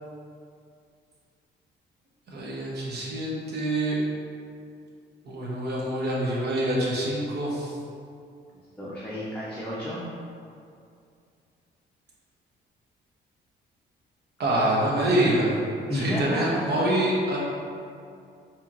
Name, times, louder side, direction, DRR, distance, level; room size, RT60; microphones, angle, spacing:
voice 1, 2.3-4.0 5.2-7.7 14.4-15.5 15.9-17.4, right 1 dB, 55° right, -4 dB, 0.9 m, -26 dB
voice 2, 8.8-10.0 15.9-16.6 17.4-17.5, left 1 dB, 10° left, -8 dB, 0.6 m, -31 dB
4.2 x 2.9 x 2.5 m, 2.4 s
cardioid pair, 90°, 20 cm